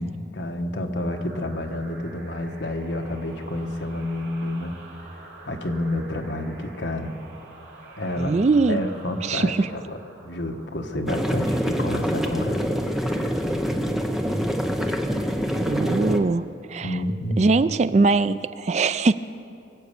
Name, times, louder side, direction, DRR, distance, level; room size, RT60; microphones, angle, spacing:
voice 1, 0.0-4.7 5.4-7.1 8.0-8.4 8.7-12.6 12.9-13.4 13.7-13.9 16.8-17.6, left 1 dB, 65° left, 4 dB, 1.2 m, -29 dB
sound 1, 0.9-12.2, right 2 dB, 70° right, 2.5 m, -47 dB
voice 2, 8.2-8.8 9.2-9.7 15.6-16.4 16.7-16.9 17.4-19.1, right 3 dB, 35° right, 14 dB, 0.3 m, -21 dB
sound 2, 11.1-16.2, equal, ahead, 0.7 m, -25 dB
23.0 x 8.2 x 6.8 m, 2.6 s
head